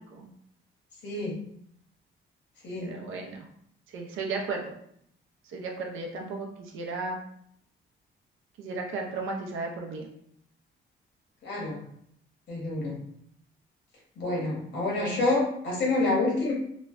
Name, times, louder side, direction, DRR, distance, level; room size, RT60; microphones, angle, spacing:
voice 1, 1.0-1.4 2.6-3.0 11.4-11.8 12.5-13.0 14.2-16.5, left 2 dB, 60° left, -3 dB, 1.1 m, -28 dB
voice 2, 2.8-3.5 3.9-4.7 5.5-7.2 8.6-10.1 14.9-15.3, right 3 dB, 80° right, 1 dB, 0.6 m, -35 dB
3.0 x 2.1 x 2.4 m, 0.70 s
cardioid pair, 100°, 20 cm